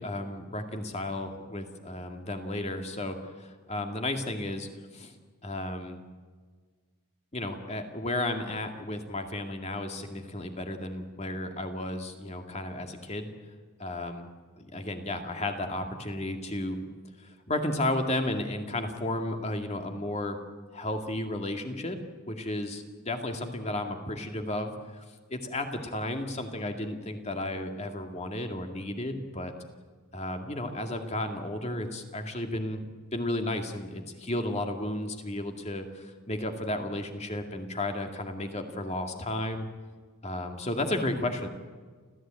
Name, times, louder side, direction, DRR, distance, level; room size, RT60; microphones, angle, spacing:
voice 1, 0.0-5.1 5.4-6.0 7.3-13.3 13.8-14.3 14.6-16.8 17.2-20.4 20.7-22.0 22.3-25.0 25.3-29.5 30.1-32.8 33.1-39.7 40.2-41.5, left 1 dB, 30° left, 5 dB, 2.3 m, -33 dB
29.5 x 14.5 x 9.1 m, 1.5 s
head